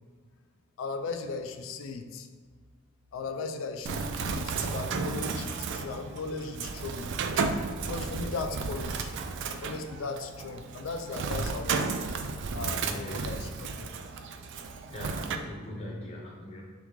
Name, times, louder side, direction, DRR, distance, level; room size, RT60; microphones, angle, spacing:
voice 1, 0.8-2.3 3.1-7.1 7.8-9.1 9.6-12.0 12.5-13.9, left 4 dB, 90° left, 7 dB, 0.4 m, -37 dB
Bird, 3.9-15.4, right 4 dB, 65° right, 0.3 m, -33 dB
voice 2, 12.8-13.6 14.2-14.3 14.9-16.6, left 1 dB, 35° left, -3 dB, 0.6 m, -41 dB
3.4 x 3.2 x 3.5 m, 1.5 s
head